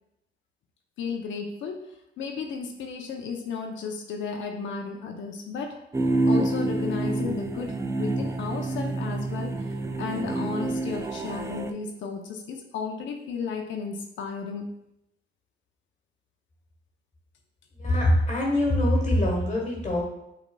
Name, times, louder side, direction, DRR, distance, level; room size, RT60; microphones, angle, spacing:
voice 1, 1.0-1.8 2.2-5.8 6.2-14.6 18.2-18.3, left 5 dB, 70° left, 3 dB, 0.6 m, -34 dB
sound 1, 5.9-11.7, right 2 dB, 15° right, 0.4 m, -28 dB
voice 2, 17.8-20.0, left 1 dB, 35° left, -2 dB, 1.3 m, -23 dB
6.2 x 3.8 x 2.2 m, 0.83 s
cardioid pair, 90°, 20 cm